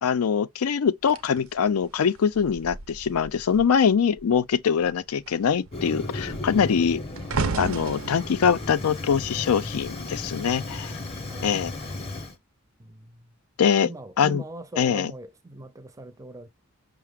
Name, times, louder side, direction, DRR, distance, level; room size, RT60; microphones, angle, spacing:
voice 1, 0.0-7.0 7.6-11.0 11.4-11.7 13.6-13.9 14.2-14.4 14.8-15.1, left 7 dB, 80° left, 0.4 m, -23 dB
sound 1, 1.1-3.8 4.1-4.5 4.8-10.1 10.9-11.1, right 4 dB, 70° right, 0.6 m, -35 dB
Fire, 5.7-12.3, left 2 dB, 25° left, 0.7 m, -35 dB
voice 2, 11.3-12.2 12.8-13.3 13.8-16.5, right 2 dB, 15° right, 0.5 m, -41 dB
5.7 x 2.0 x 3.4 m
head